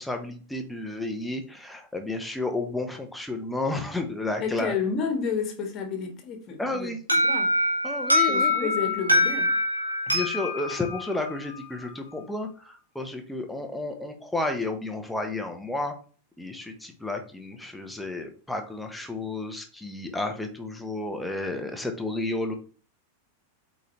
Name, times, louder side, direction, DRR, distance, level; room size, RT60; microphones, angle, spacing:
voice 1, 0.0-4.7 6.6-7.0 7.8-8.7 10.1-15.9 16.4-22.5, left 2 dB, 5° left, 4 dB, 1.2 m, -32 dB
voice 2, 4.4-6.9 7.2-7.6 8.3-9.6, left 6 dB, 35° left, 4 dB, 1.7 m, -30 dB
Alarm, 7.1-11.9, left 1 dB, 80° right, 2.0 m, -25 dB
8.1 x 4.2 x 3.3 m, 0.40 s
figure-of-eight pair, 90°, 0 cm